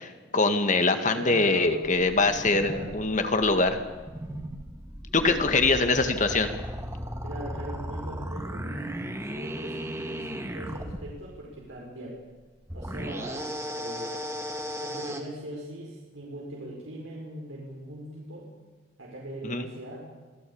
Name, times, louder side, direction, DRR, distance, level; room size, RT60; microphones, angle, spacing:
voice 1, 0.0-3.8 5.1-6.5 19.4-19.7, left 3 dB, 40° left, 7 dB, 1.9 m, -23 dB
voice 2, 1.1-1.7 2.2-2.9 5.5-5.8 7.2-12.2 12.7-14.2 14.8-18.5 19.0-20.0, right 1 dB, 85° right, -3 dB, 5.3 m, -41 dB
sound 1, 1.8-11.1 12.7-15.2, equal, 15° right, 2.3 m, -36 dB
26.0 x 16.5 x 8.7 m, 1.4 s
head